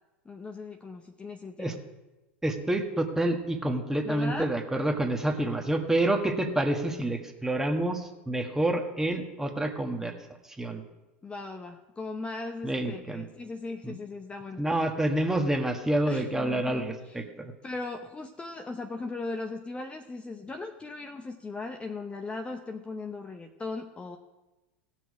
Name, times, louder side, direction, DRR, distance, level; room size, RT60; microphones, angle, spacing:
voice 1, 0.2-1.8 4.0-4.5 11.2-14.8 16.1-17.2 17.6-24.2, left 3 dB, 15° left, 4 dB, 0.8 m, -38 dB
voice 2, 2.4-10.1 10.5-10.8 12.6-13.2 13.8-13.9 14.6-17.5, right 1 dB, 5° right, 4 dB, 1.4 m, -28 dB
17.0 x 6.3 x 4.8 m, 1.1 s
hypercardioid pair, 90°, 6 cm